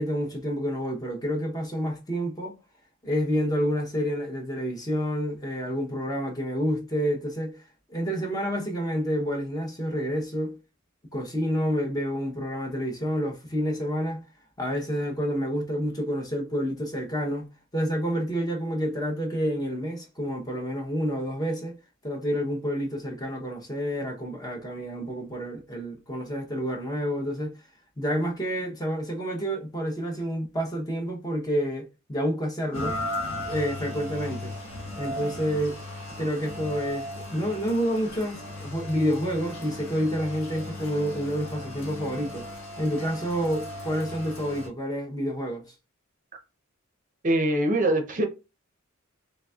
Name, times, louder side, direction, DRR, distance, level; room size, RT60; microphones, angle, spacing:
voice 1, 0.0-2.5 3.0-7.6 7.9-10.6 11.1-14.2 14.6-17.5 17.7-21.8 22.0-27.5 28.0-33.0 33.4-34.5 35.0-35.8 36.2-45.7, equal, 20° left, 0.8 m, -29 dB
Rain, 32.7-44.7, left 1 dB, 70° left, 1.3 m, -36 dB
voice 2, 47.2-48.3, right 1 dB, 40° right, 0.6 m, -23 dB
3.9 x 3.2 x 2.3 m
head